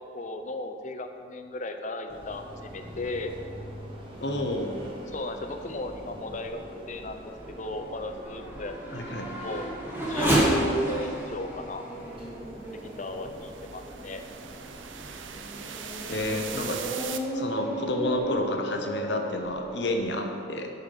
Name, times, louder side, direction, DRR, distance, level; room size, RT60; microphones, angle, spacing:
voice 1, 0.0-3.3 5.1-9.7 10.0-11.8 12.7-14.2, left 2 dB, 40° left, 6 dB, 0.7 m, -35 dB
sound 1, 2.1-17.0, right 1 dB, 30° right, 1.5 m, -45 dB
voice 2, 4.2-4.7 8.9-9.3 16.1-16.8 17.3-20.7, left 1 dB, 65° left, 3 dB, 1.0 m, -30 dB
Race car auto racing / Accelerating revving vroom, 6.0-13.9 14.5-14.6 15.2-20.0, right 1 dB, 10° right, 1.5 m, -32 dB
sound 2, 11.2-17.2, right 7 dB, 90° right, 0.7 m, -41 dB
10.5 x 5.8 x 5.4 m, 2.4 s
head